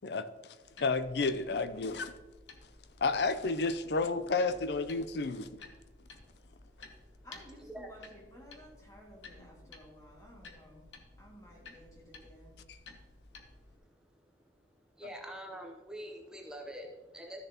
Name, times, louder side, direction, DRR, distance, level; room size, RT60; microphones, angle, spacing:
sound 1, 0.6-13.8, left 3 dB, 85° left, 1.0 m, -55 dB
voice 1, 0.8-2.1 3.0-5.5, left 3 dB, 60° left, 0.5 m, -31 dB
voice 2, 7.2-10.9 11.2-12.7, equal, 20° left, 2.0 m, -55 dB
voice 3, 15.0-17.4, right 1 dB, 5° right, 0.8 m, -44 dB
13.5 x 6.6 x 2.9 m
head